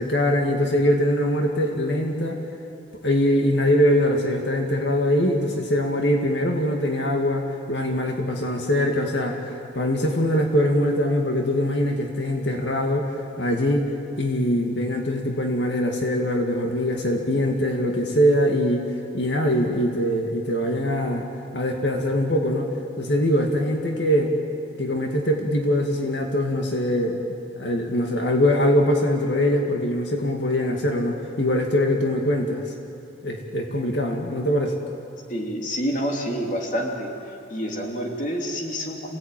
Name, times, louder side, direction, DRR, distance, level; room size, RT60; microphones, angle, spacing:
voice 1, 0.0-2.4 3.0-13.1 13.4-13.9 14.2-18.8 19.1-21.3 21.5-22.7 23.0-24.3 24.8-32.6 33.2-34.8, equal, 75° left, 2 dB, 2.2 m, -22 dB
voice 2, 35.3-37.1 37.5-39.2, equal, 45° left, 1 dB, 2.9 m, -28 dB
28.0 x 17.5 x 9.2 m, 2.6 s
head